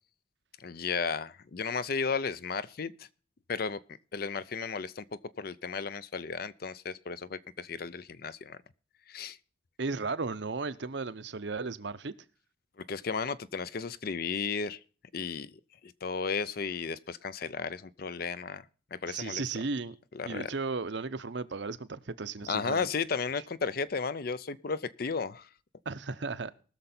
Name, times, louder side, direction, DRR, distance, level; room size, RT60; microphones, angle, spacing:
voice 1, 0.6-3.1 3.5-3.8 4.1-5.0 5.4-8.6 9.1-9.4 12.9-14.8 15.1-15.5 15.8-18.7 18.9-19.4 20.1-20.5 22.5-25.5, left 5 dB, 50° left, 0.5 m, -34 dB
voice 2, 9.8-12.1 19.1-20.0 20.3-22.9 25.9-26.5, right 4 dB, 60° right, 0.7 m, -35 dB
20.0 x 6.7 x 4.3 m
head